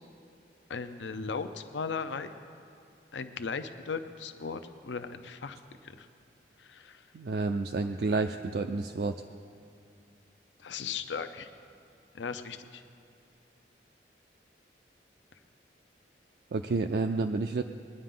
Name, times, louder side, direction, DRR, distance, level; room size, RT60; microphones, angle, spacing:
voice 1, 0.7-2.3 3.1-5.6 5.8-6.1 6.6-7.0 10.6-11.5 12.1-12.8, left 5 dB, 85° left, 9 dB, 0.6 m, -37 dB
voice 2, 7.1-9.2 16.5-17.6, right 3 dB, 60° right, 6 dB, 0.4 m, -30 dB
21.0 x 10.0 x 3.8 m, 2.6 s
head